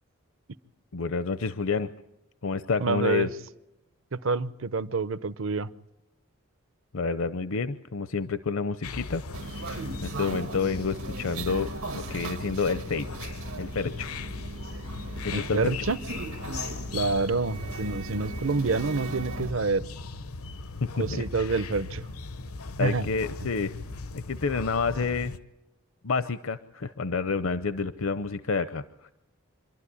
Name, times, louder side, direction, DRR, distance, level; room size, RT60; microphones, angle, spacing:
voice 1, 0.9-1.9 2.4-3.3 6.9-9.2 9.6-9.7 10.0-13.1 13.6-14.1 15.2-15.7 20.8-21.5 22.8-23.8 24.3-25.3 26.0-29.1, left 4 dB, 65° left, 12 dB, 0.7 m, -29 dB
voice 2, 2.8-3.3 4.1-5.7 15.3-16.0 16.9-19.9 21.0-22.1 22.8-23.1, right 4 dB, 65° right, 16 dB, 0.8 m, -27 dB
sound 1, 8.8-25.4, left 3 dB, 90° left, 0.9 m, -38 dB
sound 2, 9.3-19.5, right 3 dB, 80° right, 1.6 m, -39 dB
26.0 x 12.5 x 10.0 m, 0.93 s
head